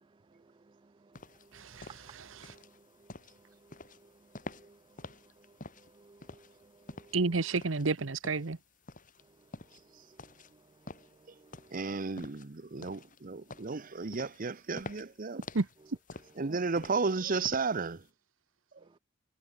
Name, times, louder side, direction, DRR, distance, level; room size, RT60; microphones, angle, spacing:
sound 1, 1.1-18.0, left 2 dB, 45° left, 3.8 m, -49 dB
voice 1, 1.5-2.6 7.1-8.6 15.5-15.7, right 3 dB, 75° right, 1.0 m, -31 dB
voice 2, 3.7-4.1 4.5-4.8 5.0-5.2 5.9-7.1 11.4-11.7, right 3 dB, 25° right, 0.4 m, -60 dB
voice 3, 11.7-15.5 16.4-18.1 18.7-18.8, right 4 dB, 45° right, 0.8 m, -33 dB
head